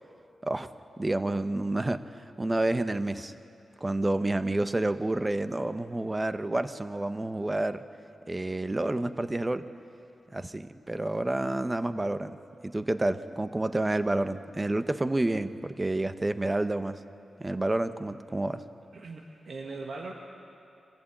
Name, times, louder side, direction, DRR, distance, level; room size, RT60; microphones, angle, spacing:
voice 1, 1.0-3.3 3.8-7.8 8.3-9.6 10.3-12.4 12.6-17.0 17.4-18.6, right 2 dB, 20° right, 11 dB, 0.8 m, -29 dB
voice 2, 18.9-20.1, right 3 dB, 55° right, 1 dB, 1.5 m, -40 dB
25.0 x 15.5 x 8.9 m, 2.7 s
wide cardioid pair, 115°, 0 cm